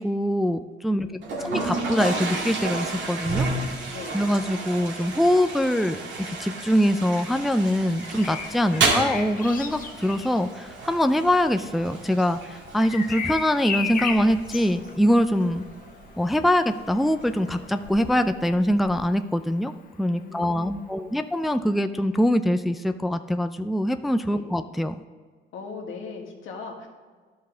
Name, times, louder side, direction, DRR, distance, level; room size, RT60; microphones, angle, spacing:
voice 1, 0.0-3.5 4.1-6.0 6.3-15.6 16.2-19.7 20.0-25.0, equal, ahead, 8 dB, 0.4 m, -23 dB
voice 2, 0.9-1.5 3.9-4.3 11.1-11.2 20.2-21.2 24.3-24.5 25.5-26.9, left 4 dB, 85° left, 1 dB, 1.7 m, -40 dB
Toilet flush, 1.2-18.2, right 3 dB, 70° right, 2.2 m, -32 dB
Bird vocalization bird call bird song, 7.9-19.7 21.4-21.6, left 5 dB, 45° left, 0.8 m, -37 dB
12.0 x 5.5 x 3.8 m, 1.5 s
cardioid pair, 90°, 20 cm